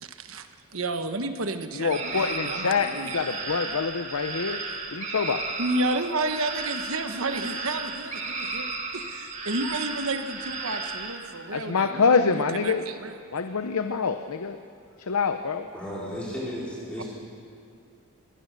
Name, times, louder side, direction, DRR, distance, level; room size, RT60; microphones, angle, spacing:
voice 1, 0.0-3.3 5.6-8.7 8.9-13.1 17.0-17.1, right 2 dB, 70° right, 8 dB, 1.2 m, -31 dB
voice 2, 1.7-4.6 4.9-5.4 11.5-12.9 13.3-14.6 15.0-15.7, left 5 dB, 90° left, 8 dB, 0.7 m, -25 dB
sound 1, 1.9-11.2, right 3 dB, 35° right, 2.1 m, -34 dB
voice 3, 15.7-17.0, equal, 5° left, -7 dB, 4.7 m, -34 dB
23.0 x 17.5 x 6.8 m, 2.4 s
head